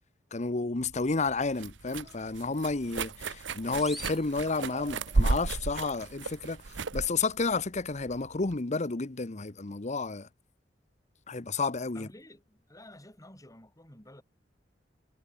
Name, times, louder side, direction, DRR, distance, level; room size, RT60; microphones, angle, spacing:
voice 1, 0.3-6.6 6.9-10.3 11.3-12.1, left 3 dB, 40° left, 1.0 m, -31 dB
sound 1, 0.8-8.6, right 3 dB, 85° right, 0.9 m, -34 dB
sound 2, 1.9-2.7 4.2-6.1 7.5-7.6, right 2 dB, 30° right, 6.9 m, -54 dB
sound 3, 3.7-5.2, equal, ahead, 3.7 m, -47 dB
voice 2, 11.9-14.2, left 1 dB, 20° left, 6.8 m, -51 dB
head